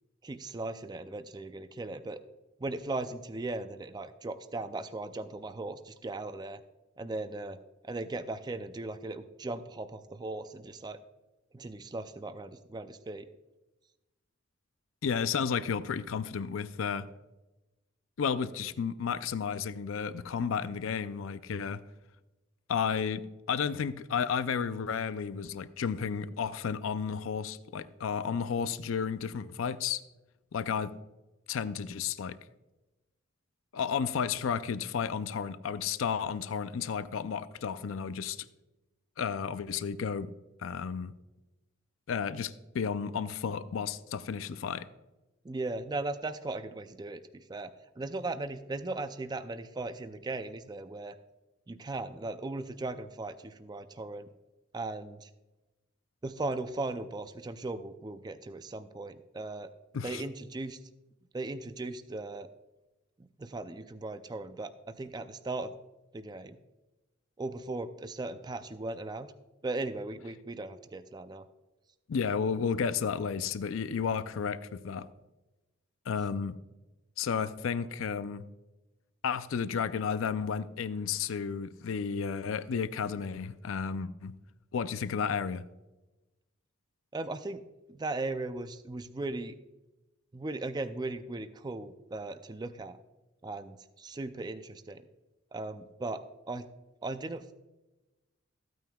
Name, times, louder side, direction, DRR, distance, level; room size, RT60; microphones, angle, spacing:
voice 1, 0.2-2.2 2.6-6.6 7.0-7.6 7.8-11.0 11.5-13.3 45.4-51.2 51.7-54.3 54.7-55.3 56.2-60.8 61.3-62.5 63.2-65.7 66.1-66.6 67.4-69.3 69.6-71.5 87.1-87.6 87.9-89.6 90.3-93.0 93.4-95.0 95.5-96.7 97.0-97.5, right 2 dB, 20° right, 10 dB, 0.4 m, -38 dB
voice 2, 15.0-17.1 18.2-21.8 22.7-30.0 30.5-30.9 31.5-32.4 33.7-38.5 39.2-40.3 40.6-41.1 42.1-44.9 59.9-60.2 72.1-75.1 76.1-76.6 77.2-78.4 79.2-84.3 84.7-85.6, left 6 dB, 80° left, 13 dB, 0.4 m, -32 dB
15.0 x 9.2 x 2.3 m, 1.1 s
head